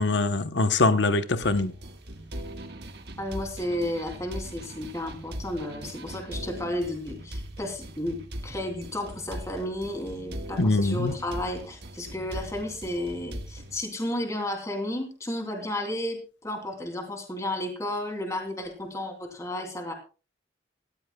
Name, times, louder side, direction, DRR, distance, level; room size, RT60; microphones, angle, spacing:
voice 1, 0.0-1.7 10.6-11.1, left 3 dB, 75° left, 0.9 m, -23 dB
sound 1, 1.4-13.8, right 1 dB, 60° right, 1.5 m, -40 dB
voice 2, 3.2-19.9, left 1 dB, 15° left, 2.9 m, -33 dB
18.5 x 14.0 x 2.3 m
head